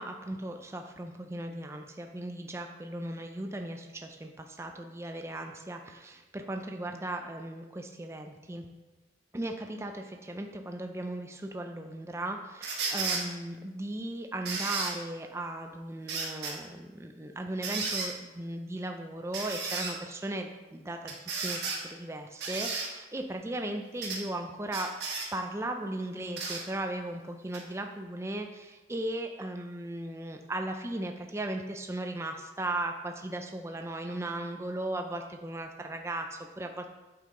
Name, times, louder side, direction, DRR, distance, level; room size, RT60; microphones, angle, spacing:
voice 1, 0.0-8.7 9.3-24.9 25.3-36.9, right 1 dB, 15° right, 4 dB, 0.4 m, -37 dB
sound 1, 12.6-13.2 14.5-14.9 16.1-16.5 17.6-18.1 19.3-19.9 21.1-21.8 22.4-22.9 24.0-24.2 24.7-25.3 26.4-26.6 27.5-27.6, right 4 dB, 60° right, 1.4 m, -33 dB
8.4 x 5.5 x 3.7 m, 1.1 s
head